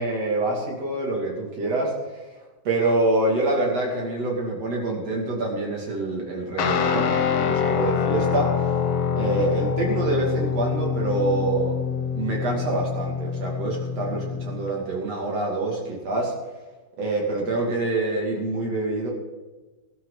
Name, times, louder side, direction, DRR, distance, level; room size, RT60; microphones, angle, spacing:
voice 1, 0.0-1.9 2.6-8.5 9.1-11.8 12.1-16.3 17.0-19.1, right 2 dB, 40° right, -1 dB, 3.1 m, -26 dB
Guitar, 6.6-14.7, left 7 dB, 85° left, 1.7 m, -25 dB
19.0 x 12.5 x 4.1 m, 1.2 s
omnidirectional pair, 5.4 m